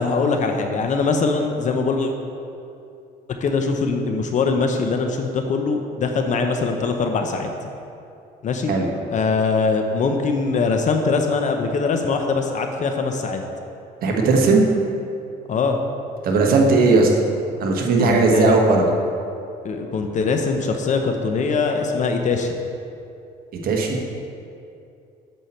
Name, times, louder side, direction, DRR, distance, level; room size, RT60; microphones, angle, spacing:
voice 1, 0.0-2.1 3.4-7.5 8.4-8.7 9.1-13.4 15.5-15.8 18.0-18.6 19.6-22.5, left 4 dB, 45° left, 4 dB, 0.8 m, -22 dB
voice 2, 14.0-14.7 16.2-17.1 17.6-18.8 23.6-24.0, right 3 dB, 60° right, 1 dB, 1.4 m, -17 dB
8.4 x 7.4 x 4.4 m, 2.6 s
cardioid pair, 110°, 17 cm